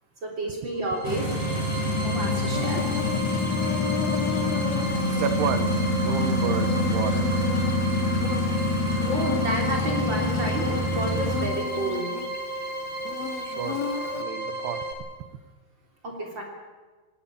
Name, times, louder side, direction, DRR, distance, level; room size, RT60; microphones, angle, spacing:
voice 1, 0.2-1.3 2.0-2.9 8.8-12.2 16.0-16.4, right 1 dB, 30° right, 1 dB, 3.6 m, -31 dB
sound 1, 0.7-14.9, right 2 dB, 45° right, 3.5 m, -34 dB
sound 2, 1.0-11.5, left 1 dB, 25° left, 4.2 m, -26 dB
Insect, 2.5-14.2, left 9 dB, 70° left, 2.8 m, -35 dB
voice 2, 5.1-7.4 13.4-13.9 14.1-14.9, right 8 dB, 75° right, 11 dB, 3.0 m, -31 dB
19.5 x 18.5 x 8.8 m, 1.3 s
omnidirectional pair, 4.8 m